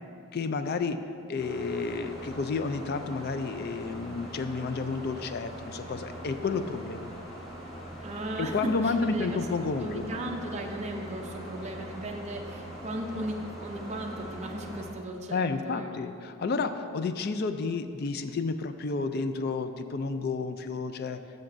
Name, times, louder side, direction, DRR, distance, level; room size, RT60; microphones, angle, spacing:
voice 1, 0.3-1.0 1.3-7.1 8.4-10.0 15.3-21.2, left 4 dB, 50° left, 9 dB, 0.4 m, -31 dB
sound 1, 1.4-14.9, equal, ahead, 1.9 m, -42 dB
voice 2, 8.0-9.4 9.8-15.9, right 1 dB, 30° right, 0 dB, 0.6 m, -36 dB
13.0 x 6.5 x 2.6 m, 2.5 s
head